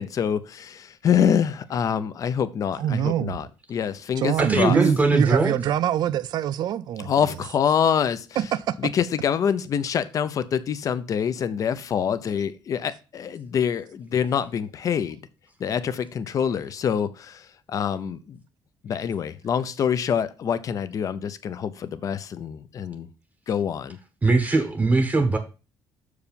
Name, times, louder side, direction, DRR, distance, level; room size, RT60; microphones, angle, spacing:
voice 1, 0.0-4.8 7.0-8.3 8.8-15.2 15.6-18.4 18.8-23.1 23.5-24.0, left 8 dB, 45° left, 0.6 m, -26 dB
voice 2, 2.8-3.4 4.2-7.1 8.4-8.8, right 10 dB, 55° right, 0.4 m, -24 dB
voice 3, 4.4-5.6 24.2-25.4, right 3 dB, 20° right, 0.9 m, -20 dB
6.8 x 4.9 x 5.2 m
cardioid pair, 150°, 8 cm